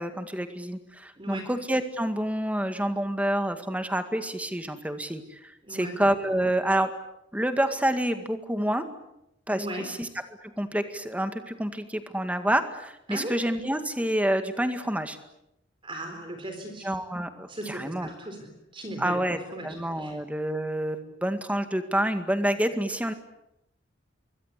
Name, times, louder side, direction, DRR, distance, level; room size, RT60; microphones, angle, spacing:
voice 1, 0.0-6.9 7.3-8.9 9.5-10.1 10.4-15.2 16.8-18.1 19.0-19.4 19.6-23.1, right 1 dB, 5° right, 8 dB, 2.0 m, -28 dB
voice 2, 1.2-1.5 5.6-5.9 9.5-9.9 13.1-13.4 15.8-16.9 17.5-20.2, right 1 dB, 25° right, 5 dB, 4.0 m, -37 dB
26.0 x 23.0 x 8.4 m, 0.84 s
head